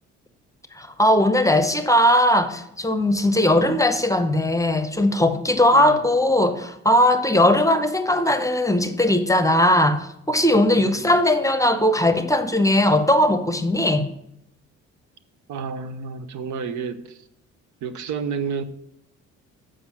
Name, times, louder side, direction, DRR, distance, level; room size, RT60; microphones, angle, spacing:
voice 1, 0.7-14.1, left 1 dB, 10° left, 9 dB, 0.7 m, -19 dB
voice 2, 10.7-11.1 15.5-17.2 17.8-18.6, right 6 dB, 70° right, 11 dB, 0.7 m, -30 dB
7.5 x 4.9 x 5.8 m, 0.79 s
cardioid pair, 90°, 30 cm